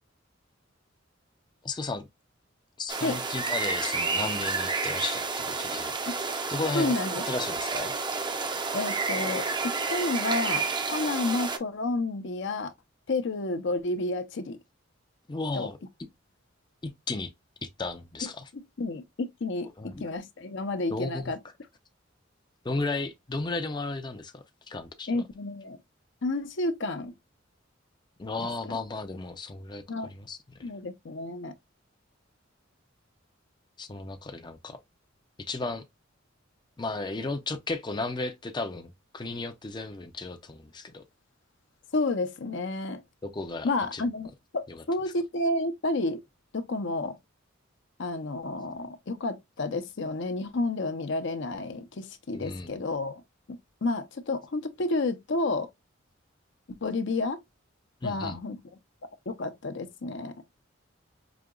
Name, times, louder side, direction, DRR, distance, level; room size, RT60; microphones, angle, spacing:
voice 1, 1.6-2.0 2.8-5.9 6.5-7.0 7.3-7.9 15.3-15.8 16.8-17.3 17.6-18.5 19.8-20.0 20.9-21.3 22.6-25.2 28.2-30.4 33.8-34.8 35.4-35.9 36.8-41.0 43.2-44.0 44.7-44.8 52.3-52.7 58.0-58.4, left 3 dB, 20° left, 0.5 m, -34 dB
sound 1, 2.9-11.6, right 4 dB, 25° right, 0.5 m, -30 dB
voice 2, 6.7-7.2 8.7-12.7 13.1-14.6 15.5-15.7 18.2-21.4 25.1-25.8 26.2-27.1 28.4-28.8 29.9-30.1 30.6-31.5 41.9-43.0 43.6-46.2 46.5-47.2 48.0-53.2 53.5-55.7 56.7-57.4 58.0-58.6 59.3-60.4, left 2 dB, 65° left, 0.6 m, -31 dB
5.0 x 2.8 x 2.3 m
head